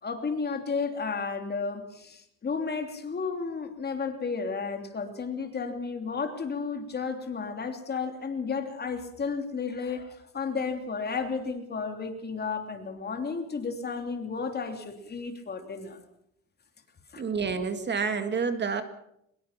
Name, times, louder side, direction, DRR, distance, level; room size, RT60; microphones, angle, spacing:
voice 1, 0.0-16.0 17.1-17.2, left 5 dB, 30° left, 6 dB, 3.0 m, -33 dB
voice 2, 17.2-18.8, right 5 dB, 35° right, 8 dB, 2.0 m, -28 dB
23.5 x 21.5 x 5.9 m, 0.76 s
cardioid pair, 140°, 32 cm